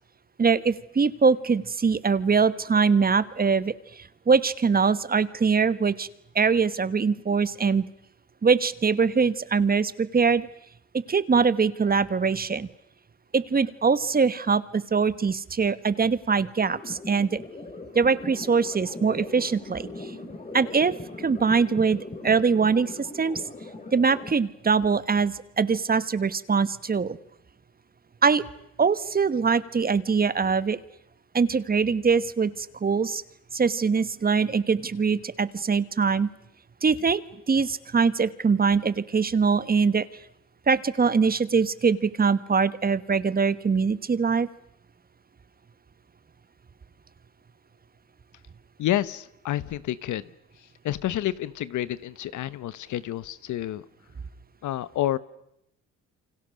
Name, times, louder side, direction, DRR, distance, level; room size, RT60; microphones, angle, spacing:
voice 1, 0.4-6.1 6.3-7.9 8.4-10.5 11.1-12.7 13.3-17.4 17.9-20.1 20.5-23.4 23.9-27.2 28.2-28.4 28.8-30.8 31.3-33.2 33.5-36.3 36.8-37.2 37.5-40.0 40.7-44.5, right 5 dB, 30° right, 16 dB, 1.2 m, -23 dB
sound 1, 16.4-24.3, left 2 dB, 25° left, 3.4 m, -40 dB
voice 2, 48.8-50.2 50.8-53.8 54.6-55.2, left 13 dB, 75° left, 17 dB, 1.1 m, -29 dB
29.0 x 25.5 x 6.4 m, 0.80 s
cardioid pair, 90°, 30 cm